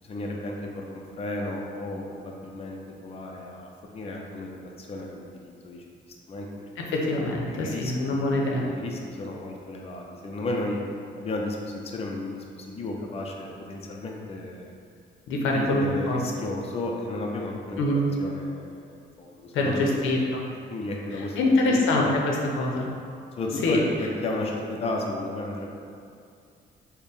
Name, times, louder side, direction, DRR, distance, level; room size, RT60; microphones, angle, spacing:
voice 1, 0.0-5.8 6.3-6.9 7.3-10.8 11.2-14.7 15.5-19.9 20.7-22.3 23.4-25.7, left 2 dB, 30° left, 0 dB, 0.5 m, -34 dB
voice 2, 6.9-8.6 15.3-16.2 17.8-18.0 19.5-20.4 21.4-22.2 22.5-22.9 23.6-23.8, left 2 dB, 85° left, -2 dB, 0.6 m, -24 dB
4.1 x 2.1 x 3.4 m, 2.4 s
cardioid pair, 90°, 20 cm